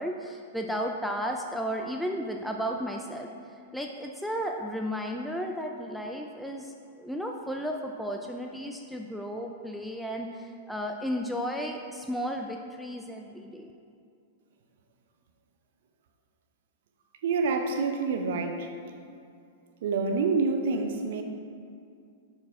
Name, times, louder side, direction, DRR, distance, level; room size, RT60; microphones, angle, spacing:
voice 1, 0.0-3.3 3.7-13.7, equal, ahead, 1 dB, 0.5 m, -34 dB
voice 2, 17.2-18.7 19.8-21.2, right 4 dB, 60° right, 5 dB, 0.8 m, -27 dB
7.0 x 4.9 x 4.8 m, 2.4 s
hypercardioid pair, 100°, 0 cm